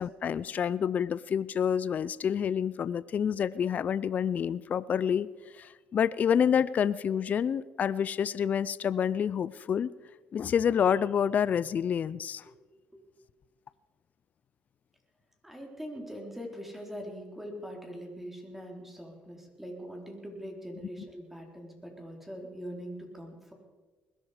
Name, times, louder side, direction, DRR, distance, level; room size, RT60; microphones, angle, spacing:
voice 1, 0.0-5.3 5.5-9.9 10.3-12.4, left 8 dB, 45° left, 17 dB, 0.5 m, -28 dB
voice 2, 15.4-23.5, equal, 5° right, 1 dB, 3.7 m, -42 dB
20.5 x 12.0 x 5.0 m, 1.3 s
cardioid pair, 90°, 4 cm